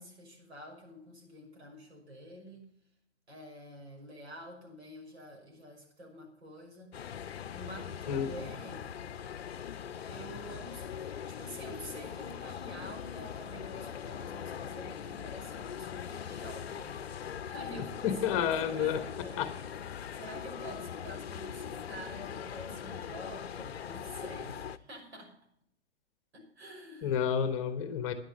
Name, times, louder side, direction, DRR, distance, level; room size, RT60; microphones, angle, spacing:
voice 1, 0.0-2.7 3.3-8.9 10.1-19.4 20.1-25.4 26.3-27.2, right 1 dB, 65° right, 0 dB, 5.8 m, -48 dB
sound 1, 6.9-24.8, left 8 dB, 60° left, 0.7 m, -41 dB
voice 2, 18.0-19.1 19.4-19.5 27.0-28.1, left 8 dB, 30° left, 10 dB, 1.1 m, -30 dB
11.0 x 9.9 x 5.5 m, 0.72 s
figure-of-eight pair, 130°, 35 cm